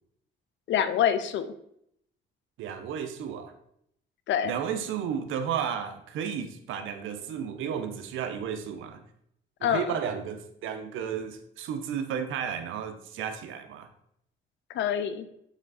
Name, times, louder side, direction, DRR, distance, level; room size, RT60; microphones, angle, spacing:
voice 1, 0.7-1.5 4.3-4.5 9.6-9.9 14.7-15.3, left 9 dB, 70° left, 11 dB, 0.6 m, -26 dB
voice 2, 2.6-3.5 4.4-9.0 9.6-13.9, right 8 dB, 85° right, 7 dB, 0.8 m, -33 dB
7.2 x 3.5 x 4.0 m, 0.72 s
cardioid pair, 90°, 20 cm